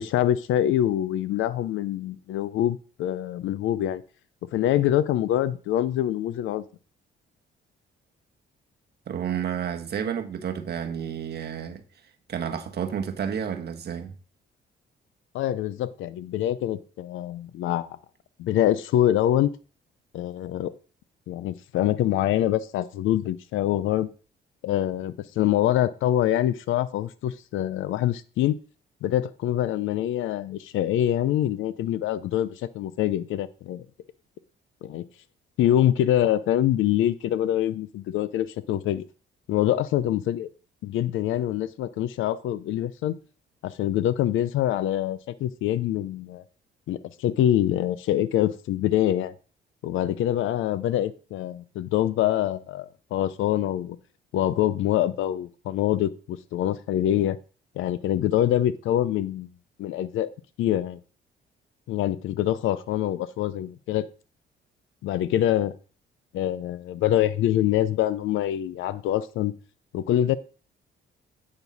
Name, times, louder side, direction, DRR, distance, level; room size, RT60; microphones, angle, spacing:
voice 1, 0.0-4.0 4.5-6.6 15.3-18.0 18.4-19.5 20.1-20.7 21.3-24.1 24.6-28.6 29.0-33.9 34.8-35.0 35.6-39.0 39.5-40.5 40.8-43.1 43.6-46.4 46.9-49.3 49.8-54.0 54.3-57.4 57.8-59.5 59.8-60.3 60.6-61.0 61.9-64.0 65.0-65.8 66.3-69.5 69.9-70.4, left 12 dB, 85° left, 0.6 m, -25 dB
voice 2, 9.1-11.8 12.3-14.2, right 8 dB, 55° right, 1.3 m, -30 dB
8.9 x 6.0 x 4.1 m
cardioid pair, 90°, 20 cm